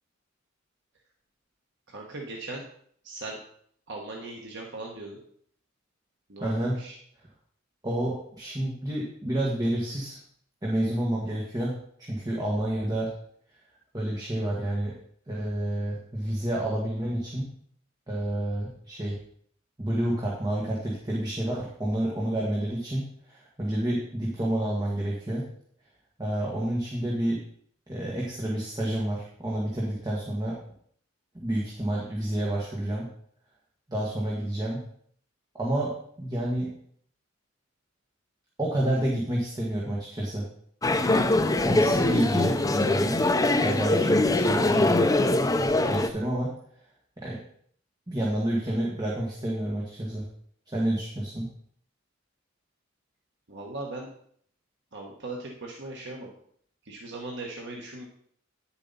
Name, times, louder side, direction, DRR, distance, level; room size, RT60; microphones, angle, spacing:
voice 1, 1.9-2.6 3.0-3.4 3.9-5.2 6.3-7.0 53.5-54.1 54.9-56.3 56.8-58.0, right 2 dB, 60° right, -1 dB, 1.3 m, -38 dB
voice 2, 6.4-6.8 7.8-10.2 10.6-13.1 13.9-15.0 15.3-17.5 18.1-19.2 19.8-25.4 26.2-27.4 27.9-30.6 31.3-33.1 33.9-34.8 35.5-36.7 38.6-40.4 41.0-43.2 43.5-45.1 45.6-46.5 47.2-47.4 48.1-50.2 50.7-51.5, right 1 dB, 20° right, -4 dB, 1.7 m, -29 dB
sound 1, 40.8-46.1, left 2 dB, 20° left, 0.6 m, -23 dB
10.0 x 7.2 x 4.1 m, 0.63 s
head